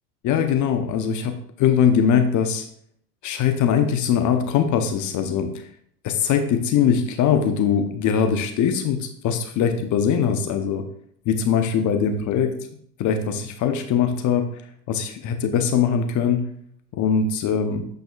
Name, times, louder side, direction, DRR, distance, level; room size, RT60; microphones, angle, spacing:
voice 1, 0.2-2.7 3.2-5.5 6.0-10.8 11.3-12.6 13.0-14.5 14.9-16.5 16.9-17.9, left 7 dB, 40° left, 7 dB, 0.9 m, -21 dB
8.9 x 5.1 x 2.5 m, 0.64 s
hypercardioid pair, 90°, 49 cm